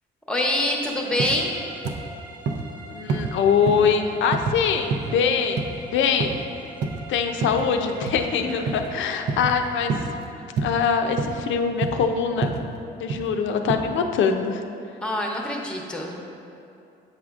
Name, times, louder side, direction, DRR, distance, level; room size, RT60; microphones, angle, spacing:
voice 1, 0.3-1.5 8.4-8.5 15.0-16.2, left 1 dB, 5° left, 0 dB, 0.8 m, -25 dB
sound 1, 1.0-10.4, right 2 dB, 20° right, 1.0 m, -43 dB
sound 2, 1.2-1.4 1.8-2.0 2.5-2.7 3.1-3.3 3.7-3.9 4.3-4.6 4.9-5.2 5.6-5.8 6.2-6.4 6.8-7.0 7.4-7.7 8.1-8.3 8.7-8.9 9.3-9.5 9.9-10.1 10.6-10.8 11.2-11.4 11.8-12.1 12.4-12.6 13.1-13.3 13.7-13.8, right 4 dB, 60° right, 0.5 m, -27 dB
voice 2, 2.9-6.4 7.1-9.9 10.6-12.5 13.0-14.6, left 6 dB, 75° left, 5 dB, 0.5 m, -23 dB
7.9 x 4.9 x 2.4 m, 2.6 s
cardioid pair, 90°, 20 cm